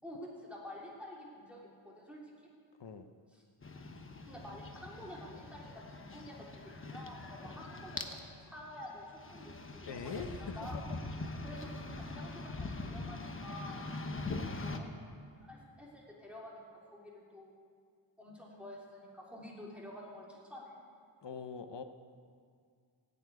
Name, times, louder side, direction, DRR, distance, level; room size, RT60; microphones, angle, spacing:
voice 1, 0.0-2.5 3.3-3.4 4.3-10.8 11.4-13.8 14.5-17.5 18.2-20.7, left 1 dB, 5° right, -5 dB, 3.2 m, -49 dB
sound 1, 3.6-14.8, left 2 dB, 30° left, 1.1 m, -43 dB
voice 2, 9.9-10.8 21.2-21.8, left 5 dB, 70° left, 8 dB, 1.0 m, -43 dB
17.5 x 7.3 x 9.3 m, 2.1 s
wide cardioid pair, 125°, 43 cm